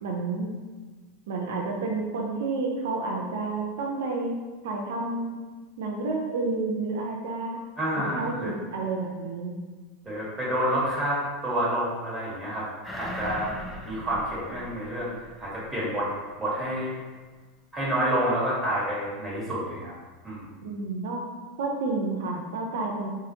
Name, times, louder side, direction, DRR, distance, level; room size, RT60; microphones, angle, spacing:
voice 1, 0.0-0.5 1.3-4.4 4.6-5.3 5.8-7.6 8.1-9.6 20.6-21.2 21.6-23.1, right 3 dB, 85° right, 0 dB, 0.5 m, -30 dB
voice 2, 7.8-8.5 10.0-12.6 13.0-13.5 13.8-15.1 15.4-16.1 16.4-16.9 17.7-19.9 20.2-20.5, right 1 dB, 10° right, -8 dB, 1.5 m, -28 dB
sound 1, 12.8-15.7 16.1-16.2, left 1 dB, 10° left, 0.5 m, -39 dB
3.9 x 2.4 x 2.7 m, 1.3 s
supercardioid pair, 120°, 0 cm